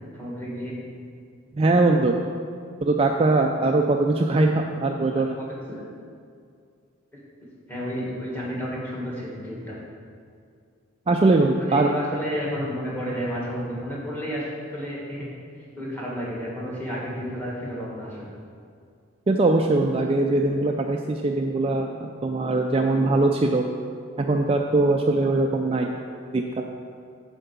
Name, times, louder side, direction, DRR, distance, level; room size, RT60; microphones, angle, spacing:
voice 1, 0.1-0.8 5.1-5.8 7.7-9.9 11.6-15.3 15.8-18.3, equal, 10° left, -5 dB, 1.7 m, -31 dB
voice 2, 1.5-2.2 2.8-5.4 11.1-11.9 19.3-23.6 24.2-25.9 26.3-26.7, right 2 dB, 25° right, 2 dB, 0.3 m, -21 dB
7.4 x 4.5 x 6.9 m, 2.3 s
head